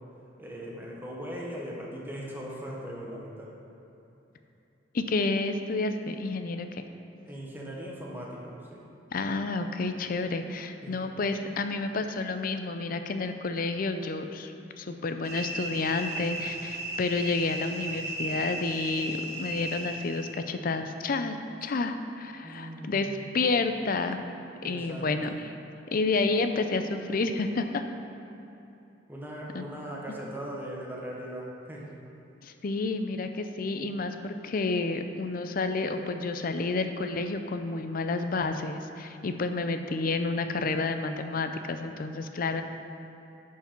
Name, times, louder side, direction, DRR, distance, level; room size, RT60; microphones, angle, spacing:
voice 1, 0.4-3.5 7.2-8.8 10.8-11.1 22.4-23.4 24.6-25.4 29.1-32.0, equal, 10° right, -3 dB, 1.1 m, -39 dB
voice 2, 4.9-6.8 9.1-24.2 24.6-25.4 25.9-27.8 29.5-29.6 32.4-42.6, left 3 dB, 50° left, 8 dB, 0.5 m, -30 dB
sound 1, 15.2-20.3, right 1 dB, 35° right, 1.9 m, -35 dB
11.0 x 4.7 x 4.5 m, 2.9 s
head